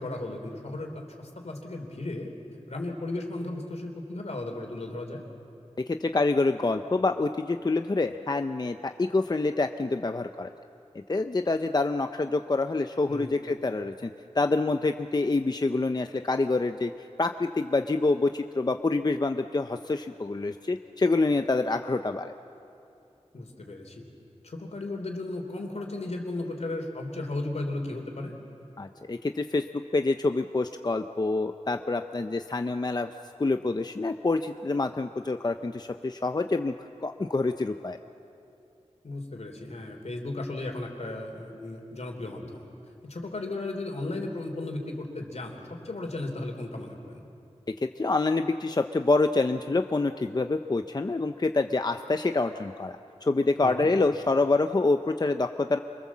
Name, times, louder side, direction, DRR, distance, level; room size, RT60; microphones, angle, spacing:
voice 1, 0.0-2.3 2.7-5.2 13.1-13.3 23.3-24.1 24.4-28.4 39.0-42.7 43.0-47.2 53.6-53.9, left 2 dB, 75° left, 3 dB, 3.5 m, -35 dB
voice 2, 5.9-10.5 11.1-14.1 14.3-16.9 17.2-22.3 28.8-33.1 33.4-36.7 37.0-38.0 47.8-55.8, left 3 dB, 35° left, 7 dB, 0.6 m, -26 dB
25.5 x 23.5 x 7.4 m, 2.8 s
wide cardioid pair, 75°, 12 cm